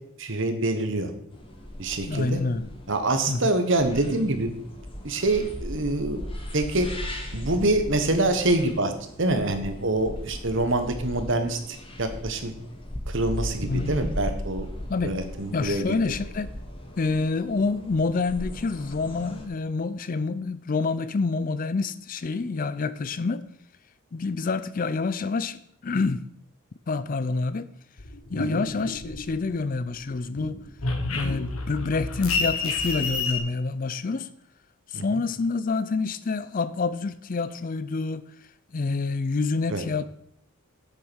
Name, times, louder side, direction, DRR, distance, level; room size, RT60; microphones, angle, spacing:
voice 1, 0.2-1.1 1.8-2.4 2.9-4.5 5.0-6.2 6.5-6.9 7.3-8.9 9.2-12.5 13.1-14.7 15.0-15.9 28.4-28.6 34.9-35.0 39.7-39.8, right 2 dB, 60° right, 1.2 m, -25 dB
sound 1, 1.3-19.4, equal, 25° left, 1.4 m, -38 dB
voice 2, 2.1-2.7 3.3-3.4 13.6-14.0 14.9-15.2 15.5-16.5 17.0-23.4 24.1-26.2 26.9-27.7 28.3-30.6 31.1-34.3 34.9-38.3 38.7-40.1, left 4 dB, 40° left, 0.4 m, -27 dB
sound 2, 28.0-29.7 30.0-33.4, left 3 dB, 80° left, 1.3 m, -29 dB
8.4 x 6.6 x 6.3 m
head